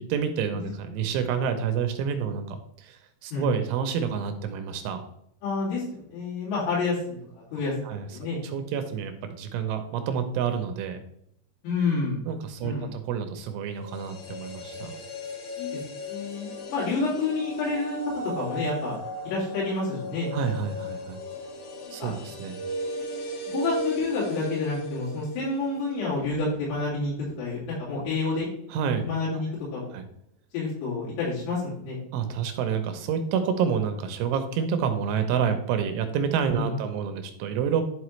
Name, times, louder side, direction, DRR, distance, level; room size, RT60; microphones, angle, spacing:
voice 1, 0.0-5.0 7.9-8.0 8.5-11.0 12.3-14.9 20.3-21.2 21.9-22.6 28.7-29.0 29.3-29.4 29.9-30.0 32.1-37.8, right 7 dB, 80° right, 7 dB, 3.0 m, -28 dB
voice 2, 5.4-8.4 11.6-12.2 12.6-12.9 15.6-15.8 16.1-18.0 18.4-19.0 19.3-20.3 22.0-22.1 23.5-27.1 27.4-28.5 29.0-30.0 30.5-32.0 36.5-36.8, left 3 dB, 80° left, -8 dB, 5.3 m, -29 dB
sound 1, 13.8-25.9 26.1-26.2, equal, 55° left, 2.6 m, -36 dB
11.5 x 5.4 x 3.2 m, 0.73 s
omnidirectional pair, 5.9 m